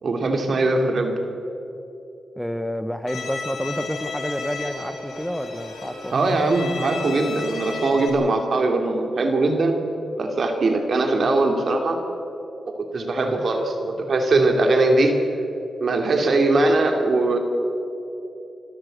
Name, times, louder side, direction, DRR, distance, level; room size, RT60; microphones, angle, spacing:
voice 1, 0.0-1.1 6.1-9.8 10.2-12.0 12.7-15.2 15.8-17.4, right 2 dB, 55° right, 4 dB, 2.8 m, -21 dB
voice 2, 2.4-6.4 13.2-13.4, equal, ahead, 9 dB, 0.9 m, -29 dB
Bowed string instrument, 3.1-8.1, left 4 dB, 85° left, 4.4 m, -34 dB
26.5 x 13.0 x 8.0 m, 3.0 s
cardioid pair, 90°, 0 cm